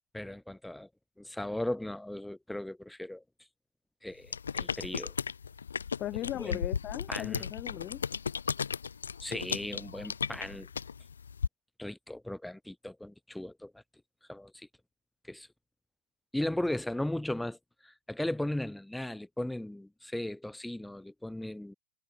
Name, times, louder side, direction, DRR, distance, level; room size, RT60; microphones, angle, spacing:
voice 1, 0.1-0.9 1.2-3.2 4.0-5.1 6.4-6.6 7.1-7.4 9.2-10.7 11.8-13.7 14.3-14.7 15.3-15.5 16.3-17.6 17.8-21.7, left 1 dB, 5° left, 6.3 m, -37 dB
sound 1, 4.3-11.5, left 6 dB, 70° left, 1.2 m, -35 dB
voice 2, 6.0-8.0, left 14 dB, 35° left, 1.2 m, -37 dB
figure-of-eight pair, 90°, 0 cm